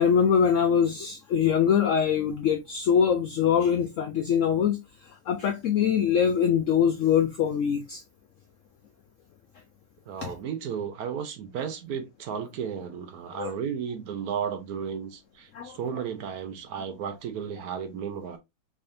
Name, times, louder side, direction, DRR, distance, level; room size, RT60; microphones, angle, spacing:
voice 1, 0.0-4.8 5.3-8.0 10.2-10.3 13.4-13.5 15.5-15.8, left 8 dB, 75° left, 0.7 m, -23 dB
voice 2, 10.1-18.4, right 7 dB, 70° right, 1.0 m, -34 dB
3.6 x 3.2 x 2.5 m
omnidirectional pair, 1.9 m